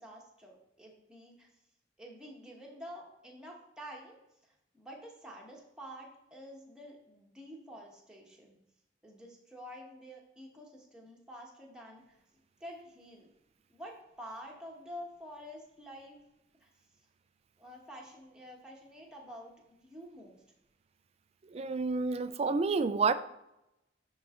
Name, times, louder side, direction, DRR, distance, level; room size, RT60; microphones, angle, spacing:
voice 1, 0.0-1.5 2.0-4.2 4.5-8.6 9.0-12.0 12.6-13.3 13.7-16.2 16.6-16.7 17.6-20.4, equal, 5° right, -2 dB, 1.3 m, -49 dB
voice 2, 21.5-23.1, right 4 dB, 35° right, 13 dB, 0.3 m, -29 dB
10.5 x 3.9 x 3.8 m, 0.88 s
head